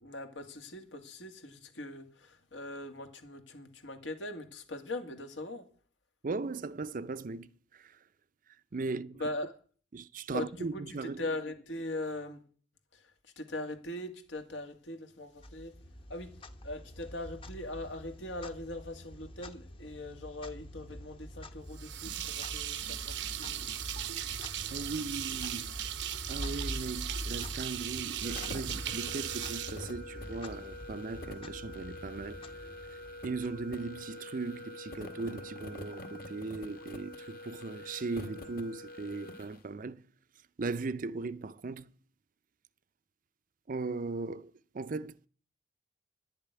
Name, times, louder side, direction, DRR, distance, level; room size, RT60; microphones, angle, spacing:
voice 1, 0.0-2.0 2.5-5.7 9.2-9.5 10.3-10.5 10.7-10.8 11.2-12.4 13.4-15.7 16.1-16.3 16.6-23.7, left 2 dB, 80° left, 2.0 m, -40 dB
voice 2, 6.2-8.0 8.7-9.3 9.9-11.3 24.7-25.7 26.3-32.5 32.9-33.0 33.2-40.1 40.6-41.9 43.7-45.3, right 3 dB, 45° right, 0.5 m, -38 dB
Clock, 15.4-34.1, equal, 30° left, 0.9 m, -45 dB
sound 1, 21.7-30.5, right 11 dB, 75° right, 0.8 m, -38 dB
sound 2, 28.2-39.6, left 1 dB, 55° left, 1.6 m, -45 dB
11.0 x 6.9 x 9.3 m
head